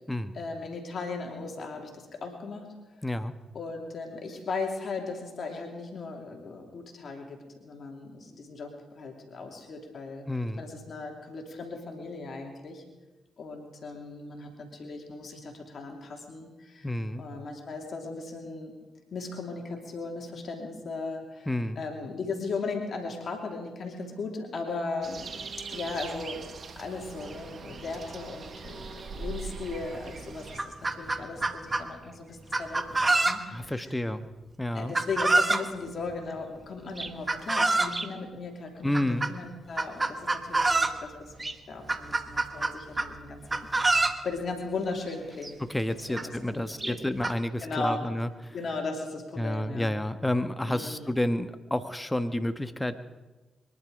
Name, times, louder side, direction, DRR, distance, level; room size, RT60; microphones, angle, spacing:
voice 1, 0.3-2.7 3.5-10.3 10.6-12.8 13.4-16.9 17.2-18.7 19.1-25.4 25.7-26.4 26.8-33.9 34.7-43.9 44.2-45.6 46.1-47.0 47.6-48.0 48.5-49.9 50.6-51.1, left 3 dB, 55° left, 2 dB, 2.9 m, -37 dB
voice 2, 3.0-3.3 10.3-10.6 16.8-17.2 21.5-21.8 33.5-34.3 34.6-34.9 38.8-39.3 45.6-48.3 49.4-53.0, left 1 dB, 10° left, 10 dB, 1.2 m, -30 dB
sound 1, 25.0-30.6, right 4 dB, 55° right, 1.2 m, -41 dB
Chicken rooster, 29.9-30.0 30.4-31.9 32.5-33.6 34.9-35.7 37.0-38.1 38.9-39.3 39.8-41.0 41.4-41.5 41.9-43.1 43.5-44.2 45.1-45.2 45.4-45.5 46.2-46.3 46.8-47.3, right 2 dB, 30° right, 1.2 m, -26 dB
23.0 x 11.0 x 5.2 m, 1.1 s
hypercardioid pair, 40°, 0 cm